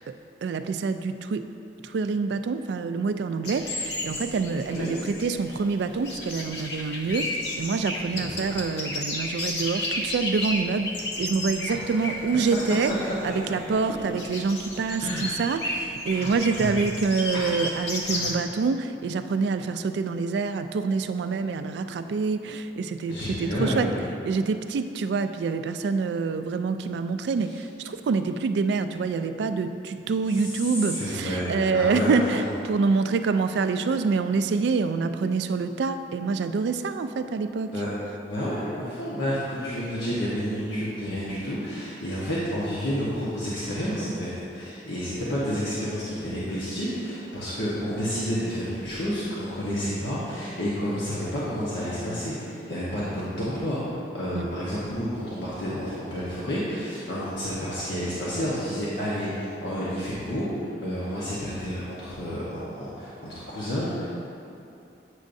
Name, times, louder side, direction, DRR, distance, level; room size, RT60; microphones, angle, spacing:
voice 1, 0.4-1.5 1.8-12.9 13.2-23.9 24.2-37.7 54.3-54.5, right 4 dB, 75° right, 9 dB, 0.3 m, -26 dB
sound 1, 3.4-18.3, left 1 dB, 70° left, 0.8 m, -33 dB
voice 2, 8.0-8.5 11.7-12.2 15.0-15.2 16.1-16.7 17.3-17.5 18.1-18.3 23.1-23.9 30.4-30.5 30.8-32.5 37.7-37.9 38.3-64.1, equal, 90° left, -9 dB, 1.1 m, -30 dB
8.3 x 6.3 x 2.6 m, 2.6 s
head